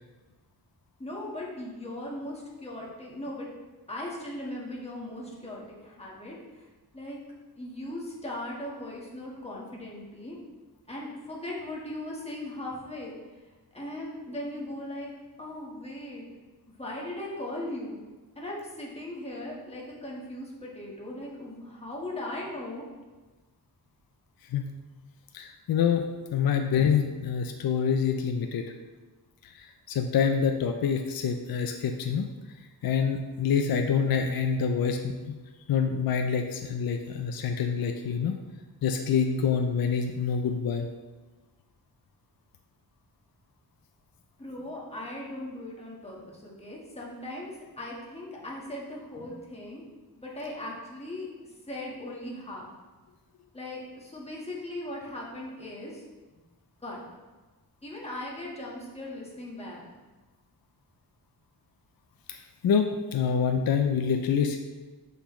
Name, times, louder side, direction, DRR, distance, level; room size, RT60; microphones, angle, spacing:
voice 1, 1.0-3.5 3.9-6.6 6.9-7.2 7.6-10.4 10.9-13.1 13.7-15.1 15.4-16.3 16.8-18.0 18.3-22.8 44.4-49.9 50.1-51.3 51.7-52.7 53.5-56.0 56.8-57.0 57.8-59.9, left 1 dB, 15° left, -4 dB, 1.5 m, -38 dB
voice 2, 25.3-28.7 29.4-32.3 32.8-35.4 35.7-38.4 38.8-40.9 62.3-64.6, left 6 dB, 65° left, 5 dB, 0.5 m, -26 dB
6.7 x 5.7 x 3.1 m, 1.3 s
wide cardioid pair, 115°, 38 cm